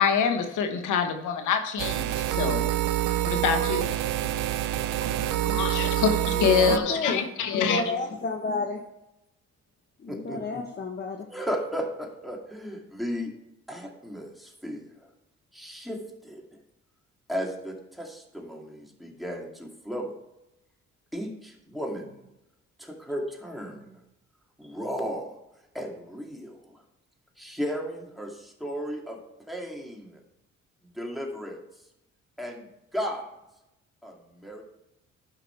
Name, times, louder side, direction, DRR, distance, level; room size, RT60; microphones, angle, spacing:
voice 1, 0.0-2.6 3.3-3.9 5.4-7.8, left 6 dB, 85° left, 6 dB, 1.2 m, -25 dB
sound 1, 1.8-6.8, right 13 dB, 85° right, 0.7 m, -26 dB
voice 2, 6.2-7.2 7.5-8.8 10.0-11.3, left 3 dB, 35° left, 3 dB, 1.1 m, -31 dB
voice 3, 10.1-10.4 11.3-13.3 13.7-14.8 15.5-16.4 17.3-20.1 21.1-22.3 22.8-24.0 24.6-25.3 25.7-26.8 27.4-29.2 29.5-30.2 30.9-31.6 32.4-32.7 32.9-33.3 34.0-34.6, equal, ahead, 0 dB, 2.4 m, -35 dB
11.5 x 6.0 x 4.5 m, 0.90 s
cardioid pair, 90°, 30 cm